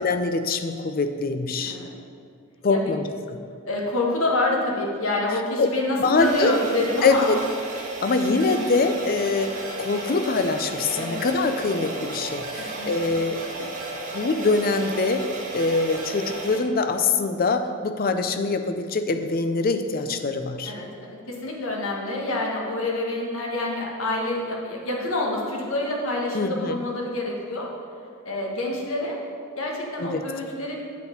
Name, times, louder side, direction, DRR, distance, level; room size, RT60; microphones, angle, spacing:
voice 1, 0.0-1.8 2.6-3.4 5.6-5.7 6.0-6.6 7.0-7.4 8.0-13.7 14.1-20.7 26.3-26.8 30.0-30.2, left 3 dB, 45° left, 8 dB, 0.5 m, -24 dB
voice 2, 1.6-1.9 2.7-2.9 3.6-7.4 10.9-11.2 12.6-13.1 20.6-27.7 28.2-29.2 29.6-30.8, left 2 dB, 75° left, -1 dB, 1.4 m, -27 dB
sound 1, 6.1-16.6, right 2 dB, 40° right, 1.3 m, -34 dB
8.2 x 4.2 x 6.8 m, 2.2 s
head